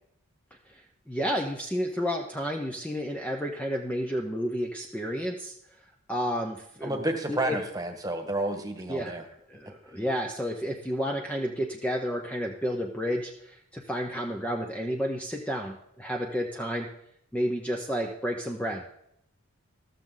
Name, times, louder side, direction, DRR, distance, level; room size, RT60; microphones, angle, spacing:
voice 1, 0.7-5.6 6.1-7.0 7.3-7.6 8.9-16.9 17.3-18.8, equal, 5° left, 1 dB, 0.8 m, -31 dB
voice 2, 6.8-9.2, right 1 dB, 15° right, 5 dB, 1.6 m, -30 dB
14.0 x 13.5 x 3.9 m, 0.75 s
head